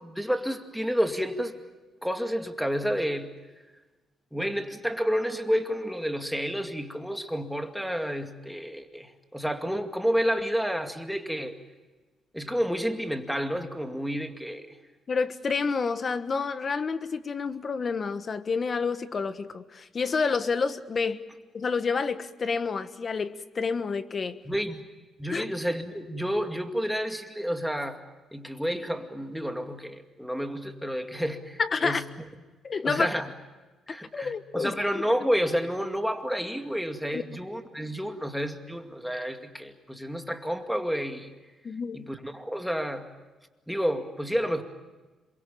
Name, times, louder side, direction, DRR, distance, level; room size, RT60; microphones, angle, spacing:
voice 1, 0.0-1.5 2.0-3.3 4.3-11.5 12.3-14.6 24.5-24.9 25.2-28.0 28.3-32.0 32.8-33.3 33.9-41.3 41.9-43.1 43.7-44.6, equal, ahead, 5 dB, 2.3 m, -30 dB
voice 2, 15.1-21.2 21.5-24.4 25.3-25.4 31.6-32.0 32.6-33.1 33.9-35.0 37.1-37.2 41.6-42.1, left 5 dB, 40° left, 11 dB, 1.4 m, -29 dB
27.0 x 23.0 x 7.3 m, 1.2 s
cardioid pair, 90°, 0 cm